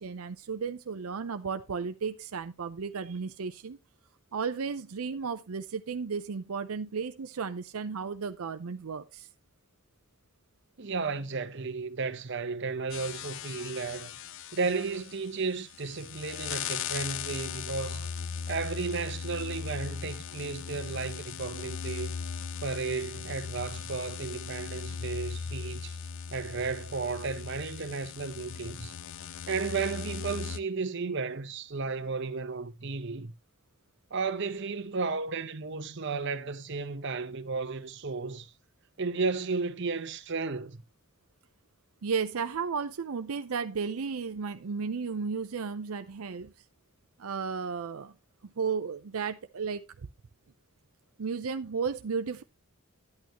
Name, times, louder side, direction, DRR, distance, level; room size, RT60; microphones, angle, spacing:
voice 1, 0.0-3.8 4.3-9.3 42.0-46.5 47.2-48.1 48.4-50.1 51.2-52.4, right 5 dB, 90° right, 0.6 m, -34 dB
voice 2, 10.8-14.1 14.5-18.1 18.5-22.1 22.6-26.0 26.3-28.9 29.5-33.3 34.1-38.5 39.0-40.8, right 4 dB, 55° right, 0.9 m, -33 dB
sound 1, 12.9-30.6, left 6 dB, 60° left, 0.4 m, -38 dB
10.5 x 8.6 x 2.9 m
head